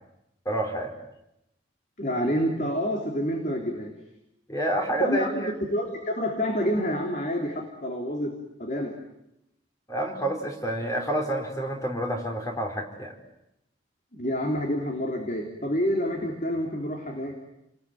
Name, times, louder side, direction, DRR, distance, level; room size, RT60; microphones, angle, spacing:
voice 1, 0.4-1.0 4.5-5.5 9.9-13.2, right 1 dB, 15° left, 3 dB, 4.3 m, -28 dB
voice 2, 2.0-3.9 5.0-5.4 5.7-8.9 14.1-17.3, equal, 40° left, 2 dB, 3.6 m, -28 dB
29.5 x 21.0 x 9.2 m, 0.84 s
head